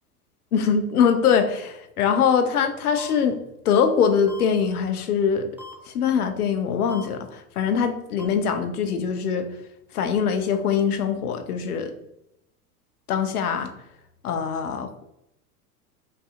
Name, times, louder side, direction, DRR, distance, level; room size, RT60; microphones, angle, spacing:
voice 1, 0.5-3.4 3.6-5.5 5.9-9.5 9.9-11.9 13.1-13.7 14.2-14.9, left 7 dB, 75° left, 8 dB, 0.7 m, -22 dB
sound 1, 3.0-3.1 4.3-4.4 5.6-5.7 6.9-7.0 8.2-8.3, left 3 dB, 5° right, 0.8 m, -40 dB
5.5 x 2.7 x 2.4 m, 0.84 s
hypercardioid pair, 90°, 45 cm